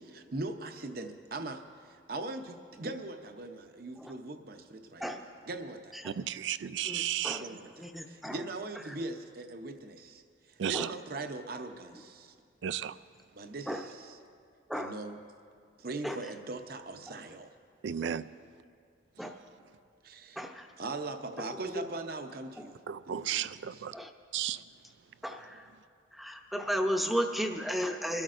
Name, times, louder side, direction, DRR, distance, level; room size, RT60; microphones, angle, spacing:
voice 1, 0.0-6.0 7.3-10.2 10.5-12.3 13.4-14.2 14.7-15.2 15.8-17.5 19.2-19.3 20.0-20.4 20.8-22.8 23.1-23.9, right 2 dB, 50° right, 6 dB, 0.7 m, -41 dB
voice 2, 6.2-7.4 10.6-10.9 12.6-12.9 17.8-18.2 22.9-23.9 24.3-24.6, right 10 dB, 70° right, 16 dB, 0.3 m, -33 dB
voice 3, 6.8-7.4 7.8-8.4 10.7-10.9 13.7-13.8 14.7-14.9 16.0-16.2 18.0-18.2 19.2-19.3 20.4-20.7 21.7-21.8 23.9-24.1 25.2-25.6 26.2-28.2, equal, ahead, 3 dB, 0.7 m, -34 dB
24.0 x 13.0 x 2.5 m, 2.2 s
head